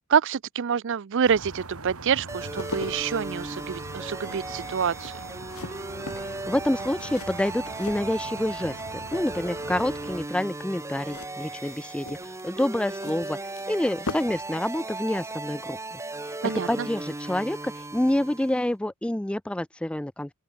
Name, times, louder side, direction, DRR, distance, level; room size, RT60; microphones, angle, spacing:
voice 1, 0.1-5.1 16.4-16.9, right 7 dB, 60° right, 0.5 m, -26 dB
sound 1, 1.2-10.3, right 3 dB, 75° right, 2.9 m, -42 dB
sound 2, 2.3-8.8 9.0-9.7 11.0-14.5 14.7-14.9, left 3 dB, 70° left, 1.7 m, -41 dB
sound 3, 2.3-18.7, right 2 dB, 15° right, 0.8 m, -37 dB
voice 2, 6.2-16.0 16.3-20.3, left 1 dB, 5° left, 0.3 m, -28 dB
open air
head